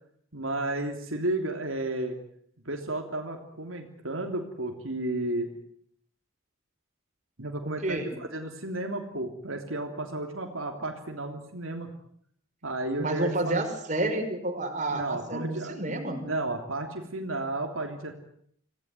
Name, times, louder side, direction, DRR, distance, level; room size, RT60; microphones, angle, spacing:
voice 1, 0.3-2.2 2.6-5.5 7.4-11.9 12.6-13.6 14.9-15.8 16.2-18.1, right 2 dB, 75° right, 3 dB, 3.3 m, -33 dB
voice 2, 7.6-8.1 13.0-16.2, right 1 dB, 35° right, 5 dB, 5.5 m, -30 dB
27.0 x 18.0 x 9.6 m, 0.68 s
head